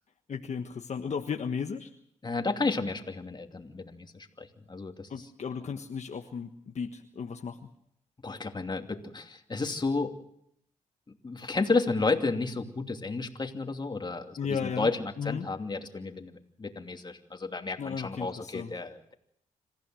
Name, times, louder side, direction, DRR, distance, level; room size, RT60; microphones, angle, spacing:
voice 1, 0.3-1.9 5.1-7.6 14.4-14.9 15.2-15.5 17.8-18.7, left 6 dB, 60° left, 4 dB, 1.4 m, -35 dB
voice 2, 2.2-5.3 8.2-10.1 11.2-19.1, left 3 dB, 35° left, 4 dB, 2.8 m, -32 dB
27.5 x 15.0 x 7.7 m, 0.71 s
cardioid pair, 70°, 13 cm